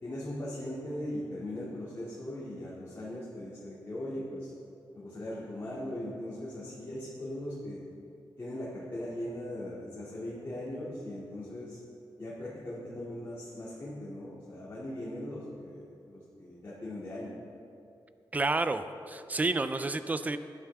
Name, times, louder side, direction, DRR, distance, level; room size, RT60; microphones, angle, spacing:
voice 1, 0.0-4.5 4.9-7.9 8.4-11.8 12.2-17.4, left 1 dB, 30° left, -8 dB, 2.6 m, -39 dB
voice 2, 18.3-20.4, right 2 dB, 20° right, 10 dB, 0.5 m, -30 dB
20.0 x 11.5 x 3.6 m, 2.6 s
wide cardioid pair, 180°, 8 cm